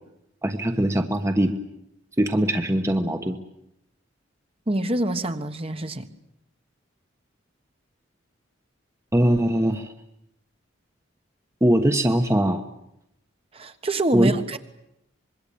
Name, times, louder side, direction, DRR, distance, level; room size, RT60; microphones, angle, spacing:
voice 1, 0.4-1.5 2.2-3.4 9.1-9.9 11.6-12.6 14.1-14.3, right 1 dB, 15° right, 6 dB, 1.2 m, -21 dB
voice 2, 4.7-6.1 13.5-14.6, right 1 dB, 30° right, 8 dB, 1.4 m, -26 dB
25.5 x 22.0 x 8.7 m, 0.81 s
head